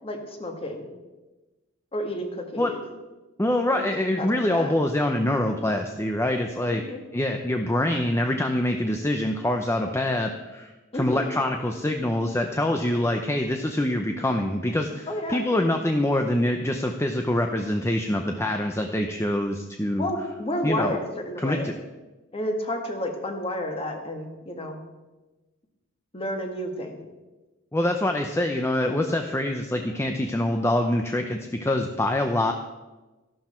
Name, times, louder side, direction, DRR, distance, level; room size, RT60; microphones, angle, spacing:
voice 1, 0.0-0.9 1.9-2.8 3.7-4.8 6.7-7.0 10.9-11.2 15.1-15.4 20.0-21.7 22.3-24.8 26.1-27.0, left 1 dB, 30° left, 3 dB, 1.7 m, -31 dB
voice 2, 3.4-6.8 7.1-20.1 20.6-21.0 21.4-21.7 27.7-32.5, left 1 dB, 15° left, 4 dB, 0.7 m, -25 dB
13.5 x 12.0 x 4.4 m, 1.1 s
head